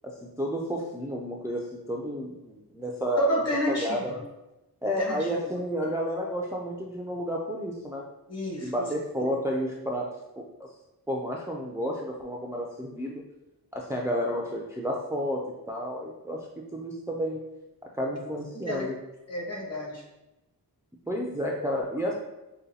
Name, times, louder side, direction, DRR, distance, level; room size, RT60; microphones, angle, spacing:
voice 1, 0.0-3.3 3.7-4.1 4.8-8.0 8.6-10.1 10.4-10.7 11.1-13.2 13.7-16.4 16.7-17.4 17.9-18.9 21.1-22.2, equal, 10° right, -2 dB, 0.3 m, -31 dB
voice 2, 3.2-4.2 5.0-5.5 8.3-8.7 9.2-9.3 18.5-18.9 19.3-20.0, equal, 40° left, -2 dB, 1.0 m, -30 dB
5.0 x 2.2 x 2.7 m, 0.98 s
wide cardioid pair, 105°, 39 cm